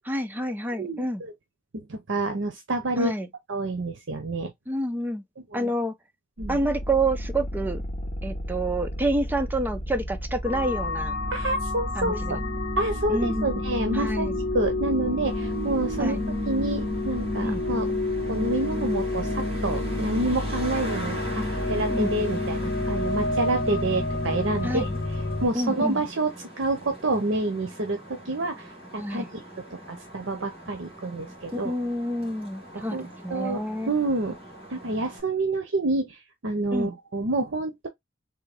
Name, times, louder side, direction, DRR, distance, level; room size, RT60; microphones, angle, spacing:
voice 1, 0.0-1.2 3.0-3.3 4.7-5.2 5.5-6.0 6.5-7.8 8.2-11.1 12.0-12.4 13.1-13.6 13.9-14.4 16.0-16.2 17.4-17.6 21.9-22.1 24.6-25.0 25.5-26.0 29.0-29.3 31.5-33.0 33.2-33.9 36.7-37.0, right 1 dB, 10° right, 0.6 m, -28 dB
voice 2, 0.8-1.3 1.9-3.1 3.5-4.5 5.5-5.7 6.4-6.6 11.3-12.4 12.8-14.3 14.5-16.2 16.4-17.9 18.3-24.9 25.4-29.4 29.7-31.7 32.7-34.4 34.7-37.9, right 2 dB, 70° right, 0.8 m, -28 dB
sound 1, 6.4-19.0, equal, 35° left, 1.2 m, -35 dB
sound 2, 10.4-25.5, left 2 dB, 50° left, 1.5 m, -29 dB
Traffic noise roadway noise, 15.2-35.2, right 1 dB, 30° right, 2.2 m, -43 dB
3.8 x 2.8 x 3.5 m
head